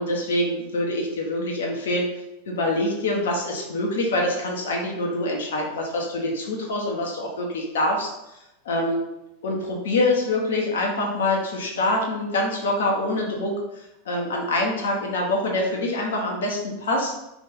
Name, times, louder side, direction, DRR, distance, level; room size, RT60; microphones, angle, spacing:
voice 1, 0.0-2.1 2.5-8.1 8.6-9.0 9.4-17.1, left 1 dB, 65° left, 0 dB, 1.2 m, -25 dB
5.3 x 3.6 x 5.4 m, 0.91 s
figure-of-eight pair, 85°, 0 cm